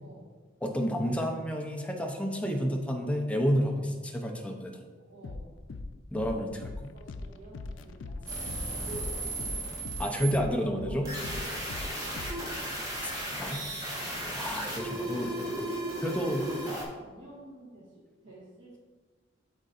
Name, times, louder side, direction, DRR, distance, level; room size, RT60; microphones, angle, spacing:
voice 1, 0.6-4.8 6.1-6.9 10.0-11.1 13.0-13.1 13.4-13.7 14.3-15.5 16.0-16.5, equal, 5° left, 2 dB, 0.7 m, -30 dB
voice 2, 5.0-5.5 6.9-10.0 10.8-12.2 14.0-14.3 15.3-16.1 16.5-18.8, right 1 dB, 75° right, -7 dB, 1.3 m, -48 dB
sound 1, 5.2-14.9, left 3 dB, 85° left, 0.4 m, -42 dB
sound 2, 8.3-10.3 11.0-16.8, right 1 dB, 20° right, 1.2 m, -35 dB
11.5 x 4.0 x 2.5 m, 1.4 s
head